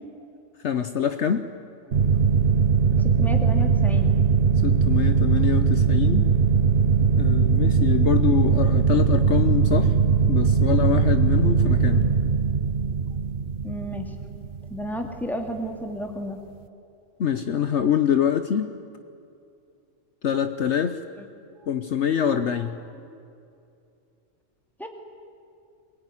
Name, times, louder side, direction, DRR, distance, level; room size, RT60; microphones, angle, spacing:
voice 1, 0.6-1.5 4.6-6.3 7.2-9.9 10.3-12.1 17.2-18.7 20.2-21.0 21.7-22.8, left 8 dB, 65° left, 10 dB, 1.1 m, -25 dB
sound 1, 1.9-15.1, right 6 dB, 45° right, 1.1 m, -20 dB
voice 2, 2.9-4.1 7.0-7.1 13.6-14.1 14.7-16.4 24.8-24.9, equal, ahead, 3 dB, 2.4 m, -32 dB
22.5 x 21.0 x 9.8 m, 2.6 s
omnidirectional pair, 1.3 m